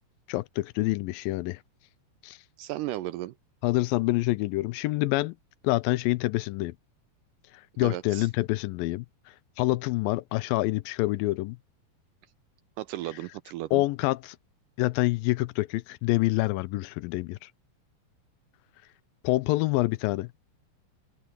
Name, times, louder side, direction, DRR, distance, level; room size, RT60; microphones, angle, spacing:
voice 1, 0.3-1.6 2.2-2.4 3.6-5.3 5.6-6.7 7.8-9.1 9.6-11.6 13.7-14.4 14.8-17.4 19.2-20.3, left 19 dB, 85° left, 2.3 m, -26 dB
voice 2, 2.6-3.3 7.8-8.3 12.8-13.8, right 15 dB, 80° right, 2.0 m, -35 dB
open air
omnidirectional pair, 4.2 m